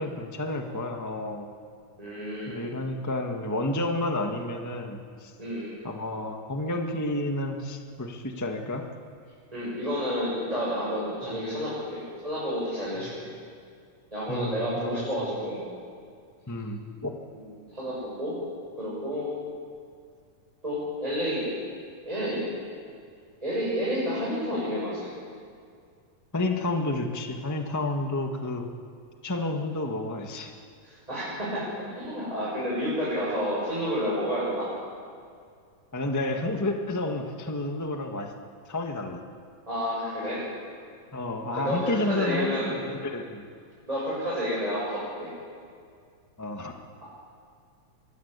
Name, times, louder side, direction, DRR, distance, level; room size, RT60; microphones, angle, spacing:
voice 1, 0.0-1.5 2.5-5.3 5.8-8.9 14.3-15.0 16.5-17.2 26.3-28.7 29.2-30.5 35.9-38.3 38.7-39.2 41.1-43.4 46.4-46.7, left 2 dB, 15° left, 3 dB, 0.6 m, -30 dB
voice 2, 2.0-2.7 5.4-5.7 9.5-13.3 14.1-15.6 17.3-18.3 18.8-19.3 20.6-21.5 22.0-22.4 23.4-25.1 30.8-31.6 31.9-34.7 39.7-40.4 41.5-42.7 43.9-45.3, equal, 10° right, -8 dB, 7.1 m, -30 dB
24.0 x 20.0 x 8.3 m, 2.2 s
omnidirectional pair, 3.6 m